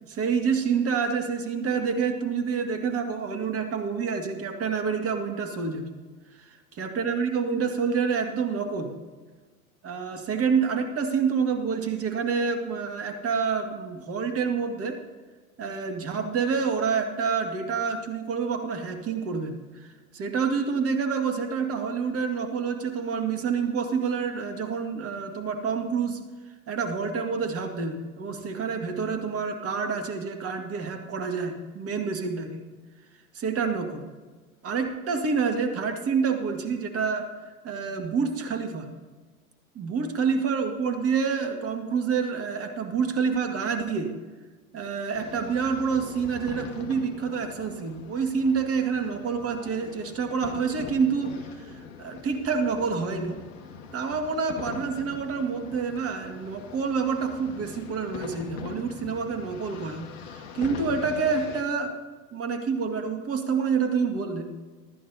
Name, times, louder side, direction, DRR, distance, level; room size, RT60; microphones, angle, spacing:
voice 1, 0.0-5.9 6.3-6.4 6.8-8.9 9.8-15.0 15.6-26.2 26.7-32.7 33.3-34.1 34.6-37.3 37.6-38.9 39.8-44.1 44.7-53.4 53.9-62.0 62.3-64.5, right 5 dB, 30° right, 6 dB, 2.0 m, -28 dB
sound 1, 45.1-61.6, left 6 dB, 60° left, 2.2 m, -42 dB
25.0 x 13.5 x 2.8 m, 1.4 s
figure-of-eight pair, 85°, 44 cm